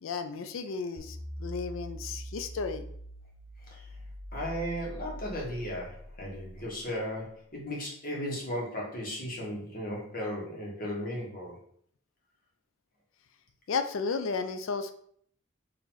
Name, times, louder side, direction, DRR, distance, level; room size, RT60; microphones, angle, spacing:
voice 1, 0.0-2.9 13.7-14.9, left 5 dB, 75° left, 9 dB, 0.4 m, -33 dB
sound 1, 1.0-7.2, equal, 55° right, 0.8 m, -43 dB
voice 2, 4.3-11.6, equal, 40° left, -3 dB, 1.4 m, -36 dB
4.7 x 2.9 x 3.9 m, 0.63 s
head